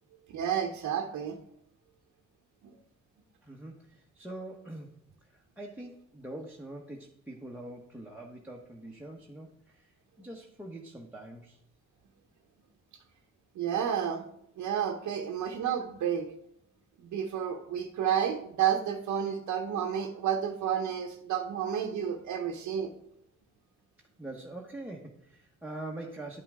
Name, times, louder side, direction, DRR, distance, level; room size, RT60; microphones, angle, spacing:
voice 1, 0.3-1.4 2.6-2.8 13.5-14.2 14.6-16.3 17.0-22.9, right 9 dB, 75° right, 2 dB, 1.0 m, -31 dB
voice 2, 3.4-11.6 24.2-26.4, right 1 dB, 5° right, 0 dB, 1.1 m, -44 dB
10.5 x 5.8 x 3.6 m, 0.77 s
cardioid pair, 90°, 30 cm